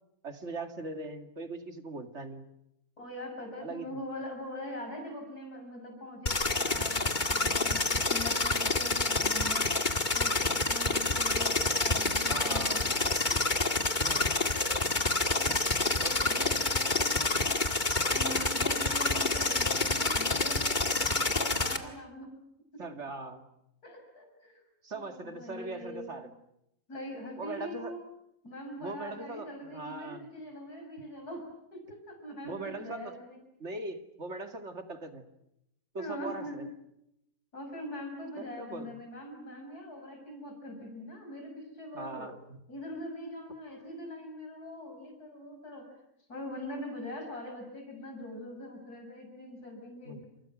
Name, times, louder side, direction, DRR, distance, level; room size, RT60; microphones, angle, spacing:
voice 1, 0.2-2.5 3.6-3.9 12.3-13.0 14.0-14.5 16.0-16.2 22.8-23.4 24.8-26.3 27.4-27.9 28.8-30.3 32.4-33.1 33.6-35.2 35.9-36.7 38.4-39.0 41.9-42.4 50.0-50.2, right 2 dB, 50° right, 7 dB, 2.6 m, -40 dB
voice 2, 3.0-9.7 10.1-13.0 13.3-13.9 14.5-14.8 15.2-22.3 22.7-22.8 23.8-24.6 24.9-26.2 26.9-28.0 28.4-31.4 31.7-33.4 36.0-36.6 37.5-42.3 42.7-45.9 46.3-50.2, left 1 dB, 90° left, 3 dB, 6.9 m, -42 dB
sound 1, 6.3-21.8, left 3 dB, 30° left, 2.0 m, -28 dB
29.5 x 27.5 x 6.3 m, 0.83 s
omnidirectional pair, 1.6 m